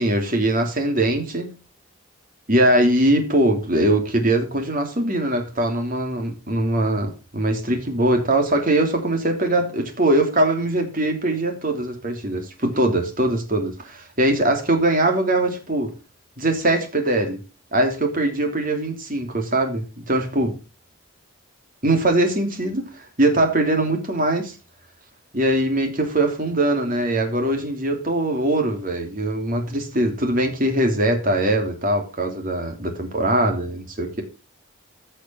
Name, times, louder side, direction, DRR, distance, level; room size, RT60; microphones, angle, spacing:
voice 1, 0.0-1.5 2.5-15.9 16.4-17.4 17.7-20.6 21.8-22.8 23.2-24.6 25.3-34.2, right 1 dB, 40° right, 3.0 m, -21 dB
15.0 x 6.5 x 5.7 m
head